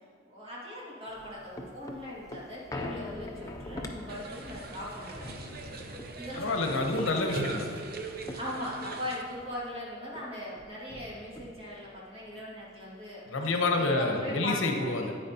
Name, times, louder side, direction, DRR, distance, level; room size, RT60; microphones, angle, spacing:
voice 1, 0.3-5.3 6.2-6.7 8.3-13.5 13.8-14.7, left 1 dB, 30° right, -6 dB, 2.2 m, -40 dB
sound 1, 1.1-9.8 10.1-10.2 10.5-11.9 12.4-12.5, left 1 dB, 15° left, 0.5 m, -43 dB
sound 2, 4.1-9.2, right 3 dB, 50° right, 0.7 m, -41 dB
voice 2, 6.4-7.8 13.3-15.1, left 2 dB, 80° left, 3 dB, 0.9 m, -28 dB
9.0 x 8.8 x 2.9 m, 2.1 s
head